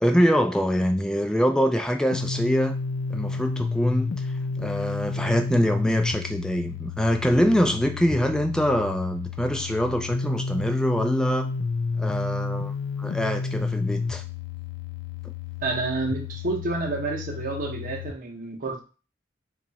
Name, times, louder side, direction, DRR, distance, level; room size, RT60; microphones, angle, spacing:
voice 1, 0.0-2.7 3.1-11.5 12.0-14.2, equal, 5° left, 5 dB, 0.4 m, -24 dB
sound 1, 2.1-18.1, left 4 dB, 90° left, 0.4 m, -31 dB
voice 2, 15.6-18.8, right 3 dB, 50° right, 1 dB, 0.8 m, -29 dB
2.9 x 2.4 x 4.0 m, 0.34 s
head